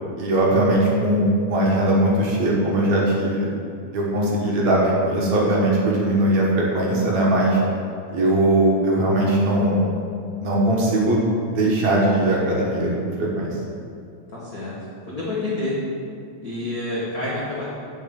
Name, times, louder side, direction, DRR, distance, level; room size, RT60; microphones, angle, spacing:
voice 1, 0.2-3.5 3.9-7.6 8.1-9.8 10.4-11.2 11.5-12.9 13.4-13.5, right 1 dB, 60° right, -4 dB, 2.4 m, -20 dB
voice 2, 14.3-14.7 15.1-15.7 16.4-17.7, left 2 dB, 90° left, -8 dB, 0.8 m, -28 dB
7.3 x 5.5 x 7.4 m, 2.4 s
omnidirectional pair, 4.0 m